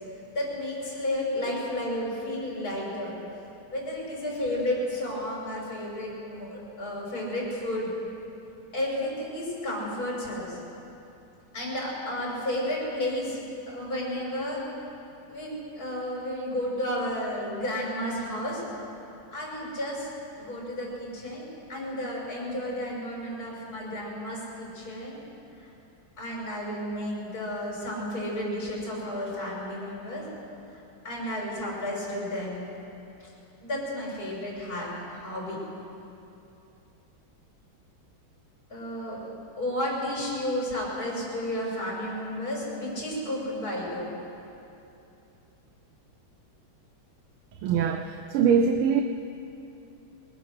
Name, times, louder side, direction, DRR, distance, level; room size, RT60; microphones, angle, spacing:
voice 1, 0.3-3.2 3.7-7.9 8.7-10.6 11.5-14.6 15.3-18.6 19.3-20.1 20.4-25.2 25.6-25.7 26.2-30.3 31.0-32.7 33.2-33.3 33.6-35.6 38.7-39.2 39.6-44.1, left 1 dB, 40° left, -4 dB, 6.5 m, -32 dB
voice 2, 47.5-49.0, right 6 dB, 90° right, 6 dB, 1.7 m, -23 dB
25.0 x 21.5 x 6.6 m, 2.8 s
omnidirectional pair, 2.3 m